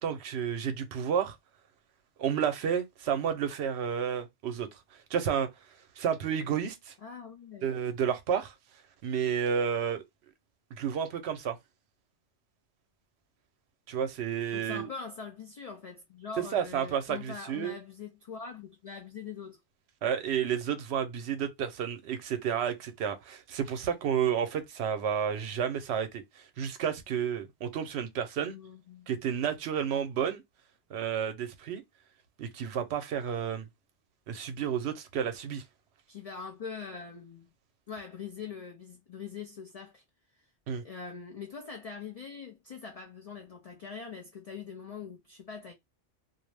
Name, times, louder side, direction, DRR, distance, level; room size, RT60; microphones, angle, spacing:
voice 1, 0.0-1.4 2.2-4.7 5.1-5.5 6.0-6.9 7.6-8.5 9.0-10.0 10.8-11.6 13.9-14.9 16.4-17.7 20.0-26.2 26.6-28.6 29.1-30.4 30.9-31.8 32.4-33.7 34.3-35.6 40.7-40.8, right 8 dB, 70° right, 0.8 m, -31 dB
voice 2, 7.0-7.7 14.5-19.6 28.4-29.1 36.1-37.5 37.9-40.0 40.8-45.7, left 5 dB, 50° left, 0.4 m, -43 dB
2.4 x 2.0 x 3.1 m
omnidirectional pair, 1.2 m